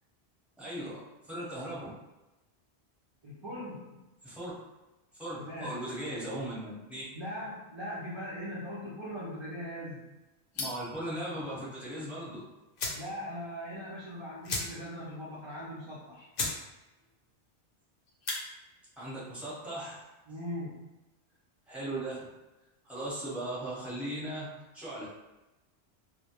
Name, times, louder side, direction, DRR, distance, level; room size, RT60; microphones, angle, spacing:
voice 1, 0.6-0.9 1.2-1.9 4.2-4.5 5.2-7.0 10.5-12.4 19.0-20.0 21.7-22.3 22.8-24.5 24.7-25.1, right 1 dB, ahead, -9 dB, 0.7 m, -38 dB
voice 2, 3.2-4.0 5.3-5.8 7.1-10.1 12.9-16.3 20.3-20.8, equal, 50° right, -8 dB, 0.3 m, -40 dB
sound 1, 10.5-10.9 12.3-12.4 12.7-13.1 13.5-13.6 13.8-13.9 14.4-15.0 15.4-15.5 16.0-16.1 16.3-16.6 17.0-17.3 18.1-18.4, left 3 dB, 60° left, 0.7 m, -35 dB
2.1 x 2.1 x 2.8 m, 1.0 s
omnidirectional pair, 1.1 m